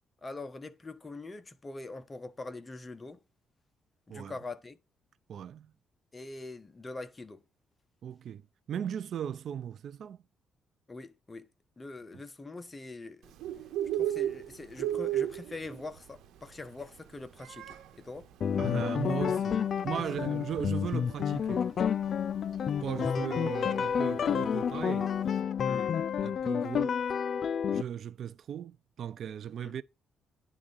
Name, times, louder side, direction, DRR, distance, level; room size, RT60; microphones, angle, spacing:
voice 1, 0.2-3.2 4.1-4.8 6.1-7.4 10.9-11.5 11.8-13.3 13.9-18.3 20.0-20.1 25.6-26.0 29.6-29.8, left 3 dB, 25° left, 1.1 m, -43 dB
voice 2, 5.3-5.7 8.0-8.4 8.7-10.2 18.6-21.7 22.8-25.1 26.2-27.0 27.7-29.8, right 9 dB, 65° right, 0.4 m, -37 dB
Bird, 13.2-25.4, right 11 dB, 85° right, 1.3 m, -38 dB
sound 1, 18.4-27.8, left 7 dB, 55° left, 0.4 m, -30 dB
10.0 x 3.7 x 5.4 m
cardioid pair, 90°, 0 cm